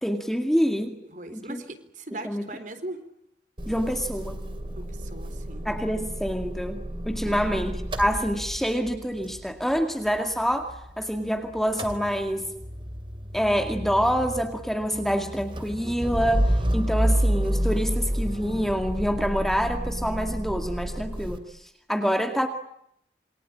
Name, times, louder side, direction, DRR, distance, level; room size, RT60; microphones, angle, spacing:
voice 1, 0.0-1.0 1.3-1.6 2.1-2.5 3.7-4.4 5.6-12.5 13.3-22.5, equal, ahead, 5 dB, 2.2 m, -27 dB
voice 2, 1.1-3.0 4.8-5.7 7.2-7.5, right 2 dB, 45° right, 9 dB, 3.9 m, -39 dB
Motor vehicle (road) / Engine starting / Idling, 3.6-11.3 11.6-21.4, equal, 30° right, 2.8 m, -30 dB
28.0 x 24.5 x 8.7 m, 0.73 s
head